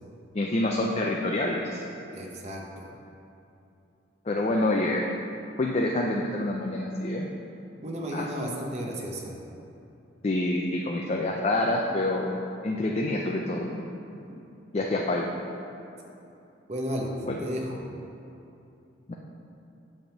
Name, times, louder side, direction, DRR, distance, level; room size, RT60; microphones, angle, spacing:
voice 1, 0.3-1.8 4.3-5.0 5.6-7.3 8.1-8.3 10.2-12.4 12.6-13.8 14.7-15.3 17.2-17.4 19.1-19.2, left 2 dB, 30° left, 0 dB, 0.4 m, -27 dB
voice 2, 2.1-2.7 7.8-9.4 14.2-14.3 14.7-14.8 16.7-17.1 17.4-17.8, equal, 35° right, -1 dB, 0.8 m, -33 dB
8.5 x 3.5 x 6.5 m, 2.8 s
head